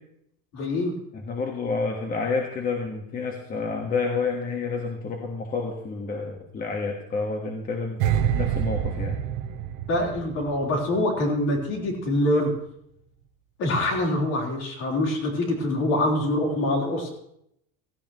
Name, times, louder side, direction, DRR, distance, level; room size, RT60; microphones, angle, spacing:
voice 1, 0.5-0.9 9.9-12.5 13.6-17.1, left 1 dB, 55° left, -1 dB, 4.0 m, -24 dB
voice 2, 1.1-9.2, left 4 dB, 30° left, 2 dB, 1.5 m, -29 dB
sound 1, 8.0-11.2 11.5-11.7, right 10 dB, 75° right, 1.2 m, -27 dB
16.0 x 15.0 x 3.1 m, 0.75 s
cardioid pair, 155°, 30 cm